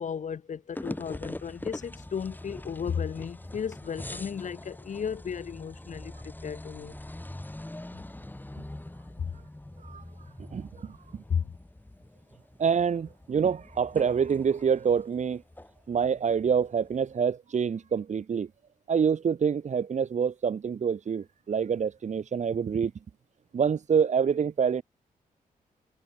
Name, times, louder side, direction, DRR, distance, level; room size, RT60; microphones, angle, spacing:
voice 1, 0.0-7.0 9.2-9.4 11.3-11.5, left 7 dB, 60° left, 1.2 m, -34 dB
sound 1, 0.7-17.1, left 1 dB, 15° left, 4.6 m, -43 dB
voice 2, 10.5-11.2 12.6-15.4 15.9-18.5 18.9-22.9 23.5-24.8, right 6 dB, 55° right, 1.0 m, -26 dB
cardioid pair, 75°, 14 cm